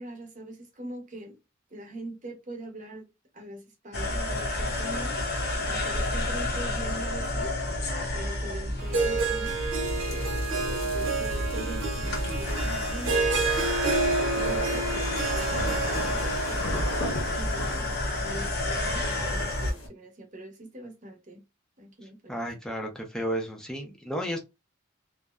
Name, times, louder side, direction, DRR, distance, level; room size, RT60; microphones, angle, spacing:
voice 1, 0.0-1.4 1.7-3.1 3.3-5.3 5.5-7.6 8.1-13.2 13.9-16.6 17.3-21.4 21.8-22.4, right 1 dB, 35° right, 0.8 m, -42 dB
sound 1, 3.9-19.7, left 2 dB, 50° left, 0.6 m, -30 dB
Harp, 8.8-17.8, right 3 dB, 75° right, 0.9 m, -29 dB
sound 2, 9.8-19.9, equal, 90° left, 1.0 m, -38 dB
voice 2, 22.3-24.4, equal, 5° left, 0.5 m, -32 dB
2.6 x 2.1 x 2.2 m
head